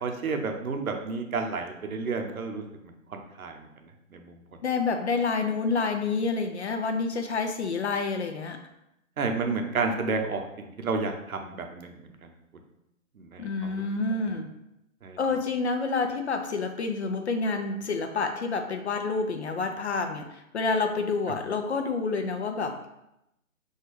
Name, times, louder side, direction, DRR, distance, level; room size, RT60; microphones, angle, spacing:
voice 1, 0.0-3.6 4.1-4.4 9.2-12.0 12.2-12.3 13.2-13.8 15.0-15.2, right 4 dB, 80° right, 4 dB, 0.8 m, -31 dB
voice 2, 4.6-8.6 13.4-14.5 15.2-22.7, left 4 dB, 55° left, 6 dB, 0.5 m, -28 dB
6.4 x 2.3 x 3.1 m, 0.84 s
figure-of-eight pair, 145°, 42 cm